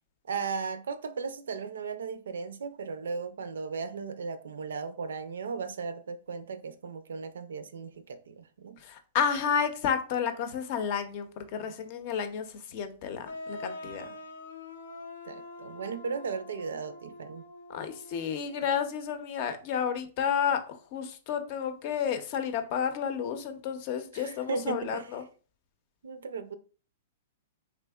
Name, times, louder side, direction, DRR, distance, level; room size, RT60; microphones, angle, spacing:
voice 1, 0.3-8.8 15.2-17.5 24.1-25.1 26.0-26.6, right 5 dB, 90° right, 0.4 m, -36 dB
voice 2, 8.8-14.1 17.7-25.2, left 7 dB, 45° left, 0.6 m, -31 dB
sound 1, 13.2-18.8, left 2 dB, 85° left, 0.7 m, -45 dB
3.5 x 3.1 x 2.3 m
hypercardioid pair, 140°, 0 cm